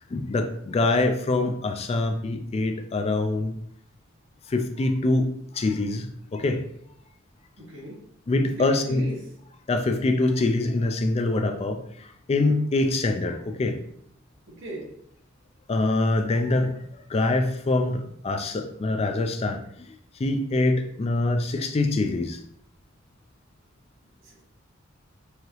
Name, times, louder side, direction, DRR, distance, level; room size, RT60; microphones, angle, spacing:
voice 1, 0.1-3.6 4.5-6.6 8.3-9.0 9.7-13.8 15.7-19.6 19.9-20.0 20.2-22.4, left 2 dB, 30° left, 6 dB, 0.3 m, -24 dB
voice 2, 7.6-8.0 8.6-9.2 14.5-14.9 24.2-24.4, right 1 dB, 65° right, -3 dB, 1.4 m, -38 dB
4.8 x 2.7 x 3.0 m, 0.68 s
head